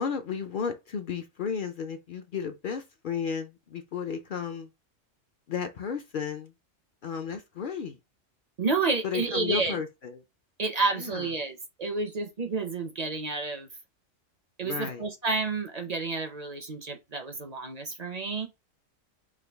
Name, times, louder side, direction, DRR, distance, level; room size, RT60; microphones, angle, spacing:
voice 1, 0.0-4.7 5.5-6.5 7.0-8.0 9.0-10.2 11.0-11.3 14.6-15.0, left 6 dB, 60° left, 0.6 m, -33 dB
voice 2, 8.6-9.8 10.6-13.7 14.6-18.5, right 3 dB, 50° right, 0.5 m, -30 dB
4.9 x 2.3 x 3.3 m
omnidirectional pair, 1.3 m